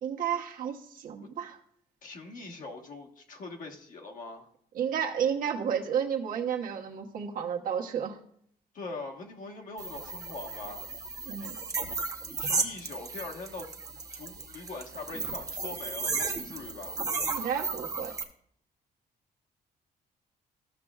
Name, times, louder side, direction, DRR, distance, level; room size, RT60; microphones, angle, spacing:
voice 1, 0.0-1.6 4.7-8.2 11.3-11.6 17.3-18.1, right 8 dB, 60° right, 1 dB, 1.2 m, -31 dB
voice 2, 2.0-4.5 8.7-10.9 12.4-13.7 14.1-17.0, left 3 dB, 55° left, 1 dB, 1.4 m, -42 dB
sound 1, 9.8-18.2, right 4 dB, 20° right, 0.9 m, -34 dB
14.5 x 6.7 x 2.4 m, 0.66 s
cardioid pair, 165°, 16 cm